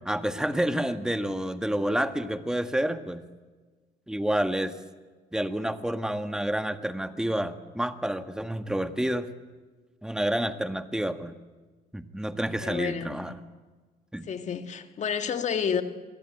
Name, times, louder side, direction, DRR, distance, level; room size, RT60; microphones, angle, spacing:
voice 1, 0.0-3.3 4.1-4.7 5.3-9.3 10.0-11.4 11.9-13.4 14.1-14.2, right 1 dB, 5° right, 1.6 m, -29 dB
voice 2, 12.6-13.3 14.2-15.8, left 7 dB, 45° left, 2.1 m, -30 dB
26.5 x 20.0 x 9.1 m
cardioid pair, 110°, 17 cm